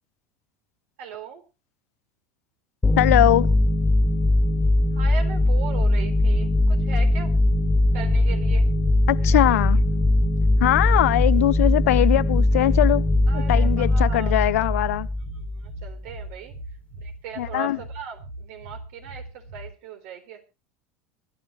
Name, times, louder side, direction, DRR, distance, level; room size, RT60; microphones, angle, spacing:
voice 1, 1.0-1.4 4.9-7.3 7.9-8.7 13.3-14.7 15.4-16.5 17.0-20.4, right 7 dB, 70° right, 3.8 m, -38 dB
sound 1, 2.8-16.0, left 1 dB, 15° left, 1.9 m, -20 dB
voice 2, 3.0-3.5 9.1-9.8 10.6-13.0 13.3-15.1 17.4-17.8, left 15 dB, 80° left, 0.6 m, -21 dB
sound 2, 6.0-19.7, right 2 dB, 85° right, 5.1 m, -41 dB
24.0 x 10.5 x 3.1 m
hypercardioid pair, 90°, 8 cm